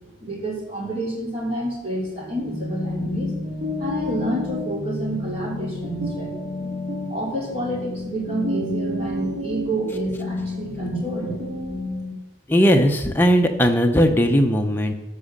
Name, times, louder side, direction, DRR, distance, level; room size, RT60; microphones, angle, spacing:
voice 1, 0.2-3.3 3.8-6.3 7.1-11.4, right 1 dB, 30° right, -4 dB, 3.1 m, -28 dB
sound 1, 2.2-12.1, left 2 dB, 50° right, 2.2 m, -30 dB
voice 2, 12.5-14.9, equal, 10° left, 4 dB, 0.7 m, -18 dB
12.5 x 4.9 x 6.6 m, 1.0 s
head